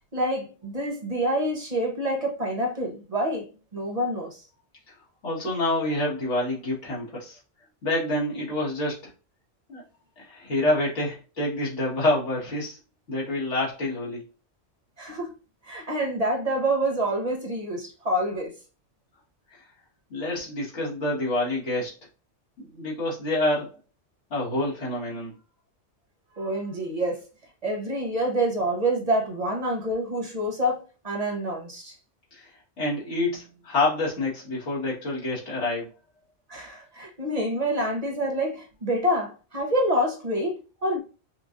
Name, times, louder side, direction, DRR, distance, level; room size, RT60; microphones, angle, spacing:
voice 1, 0.1-3.5 3.7-4.4 15.0-15.3 15.6-18.5 26.4-27.3 27.6-32.0 36.5-41.0, right 1 dB, 35° right, 0.8 m, -27 dB
voice 2, 5.2-7.4 7.8-9.0 9.7-9.8 10.2-12.8 13.1-14.2 20.1-21.9 22.6-23.8 24.3-25.3 32.3-32.5 32.8-35.9, left 1 dB, 70° left, 2.0 m, -27 dB
5.6 x 2.5 x 2.5 m
omnidirectional pair, 1.2 m